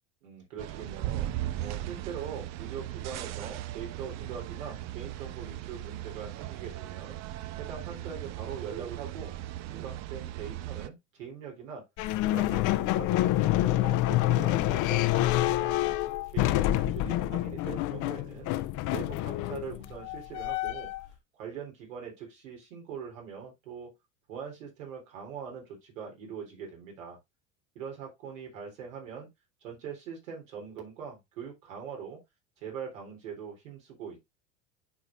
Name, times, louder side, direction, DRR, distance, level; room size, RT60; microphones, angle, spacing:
voice 1, 0.2-1.3 1.6-7.2 7.6-9.3 9.7-11.8 12.2-15.8 16.3-18.5 18.9-20.9 21.3-23.9 24.3-27.2 27.8-29.3 29.6-32.2 32.6-34.2, right 7 dB, 75° right, 3.7 m, -42 dB
sound 1, 0.6-10.9, right 14 dB, 45° right, 0.6 m, -38 dB
sound 2, 12.0-21.1, left 15 dB, 50° left, 0.7 m, -27 dB
11.0 x 4.1 x 2.5 m
hypercardioid pair, 85°, 39 cm